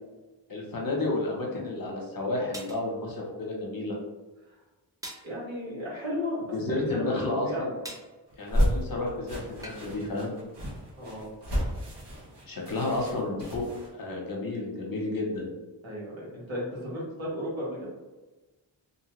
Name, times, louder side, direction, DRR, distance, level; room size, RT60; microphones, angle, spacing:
voice 1, 0.5-4.0 6.5-7.7 8.4-10.3 12.5-15.5, left 2 dB, 45° left, -1 dB, 0.8 m, -31 dB
sound 1, 2.5-2.8 5.0-5.3 7.8-8.1 9.6-9.9, right 1 dB, 10° right, 0.4 m, -42 dB
voice 2, 5.2-7.7 11.0-11.3 15.8-17.9, left 1 dB, 75° right, -6 dB, 1.4 m, -34 dB
sound 2, 8.3-13.9, equal, 60° right, 1.0 m, -31 dB
2.7 x 2.2 x 3.0 m, 1.2 s
wide cardioid pair, 85°, 46 cm